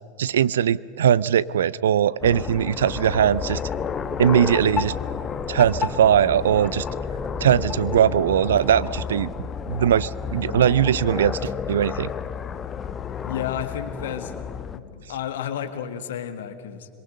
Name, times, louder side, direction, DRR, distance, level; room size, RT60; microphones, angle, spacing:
voice 1, 0.2-3.6 4.2-4.9 5.5-6.8 7.4-9.3 9.7-12.1, right 9 dB, 70° right, 21 dB, 0.5 m, -20 dB
sound 1, 2.2-14.8, left 6 dB, 30° left, 1.1 m, -31 dB
voice 2, 13.2-16.9, left 9 dB, 65° left, 10 dB, 1.7 m, -32 dB
25.5 x 22.5 x 6.6 m, 2.2 s
figure-of-eight pair, 80°, 0 cm